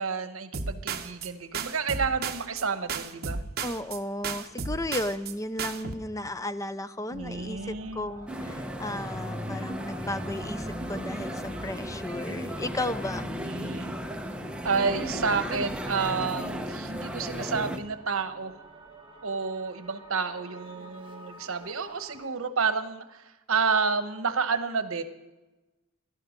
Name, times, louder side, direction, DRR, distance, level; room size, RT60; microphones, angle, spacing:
voice 1, 0.0-3.4 7.1-8.1 13.4-13.9 14.6-18.5 19.2-25.0, right 5 dB, 75° right, 10 dB, 1.0 m, -30 dB
sound 1, 0.5-1.3 1.5-2.6 2.9-4.0 4.2-5.3 5.6-5.9, right 5 dB, 50° right, 1.0 m, -33 dB
voice 2, 3.6-13.3, left 1 dB, 15° left, 13 dB, 0.5 m, -34 dB
sound 2, 7.1-22.3, right 2 dB, 25° right, 1.4 m, -50 dB
sound 3, 8.3-17.8, equal, 5° right, 0.8 m, -35 dB
17.0 x 12.0 x 5.2 m, 1.1 s
head